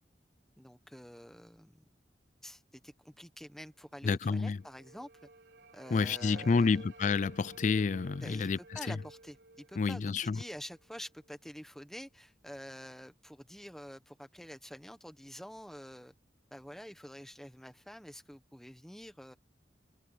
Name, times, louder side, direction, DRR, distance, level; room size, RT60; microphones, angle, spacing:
voice 1, 0.6-1.8 2.4-5.3 5.7-6.8 8.2-16.1 16.5-19.3, equal, ahead, 1.3 m, -48 dB
voice 2, 4.0-4.6 5.9-8.9 9.8-10.4, left 4 dB, 45° left, 0.4 m, -29 dB
sound 1, 4.3-11.3, right 2 dB, 90° right, 3.7 m, -53 dB
head